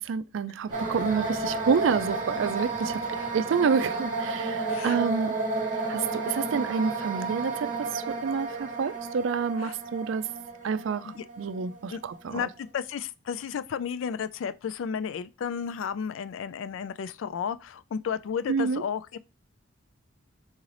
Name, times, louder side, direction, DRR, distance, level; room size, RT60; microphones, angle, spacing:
voice 1, 0.0-3.0 3.3-5.3 5.9-10.3 10.6-12.4 18.5-18.8, right 6 dB, 75° right, 0.4 m, -28 dB
sound 1, 0.7-4.8, right 1 dB, 20° right, 0.8 m, -48 dB
sound 2, 0.7-12.6, right 3 dB, 35° right, 1.1 m, -32 dB
voice 2, 4.7-5.0 9.6-9.8 11.0-11.2 11.9-12.0 12.3-19.2, left 7 dB, 75° left, 0.3 m, -33 dB
4.0 x 3.8 x 3.2 m
head